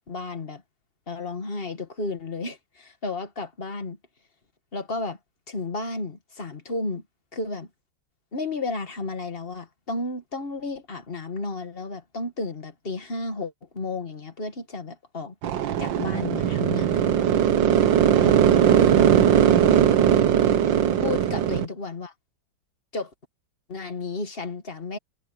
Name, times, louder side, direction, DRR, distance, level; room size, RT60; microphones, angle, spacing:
voice 1, 0.1-0.6 1.1-4.0 4.7-5.2 5.5-7.0 7.3-7.7 8.3-15.3 15.8-17.1 18.2-19.1 21.0-22.1 22.9-23.1 23.7-25.0, left 3 dB, 30° left, 1.9 m, -33 dB
sound 1, 15.4-21.6, right 9 dB, 75° right, 1.7 m, -19 dB
omnidirectional pair, 2.1 m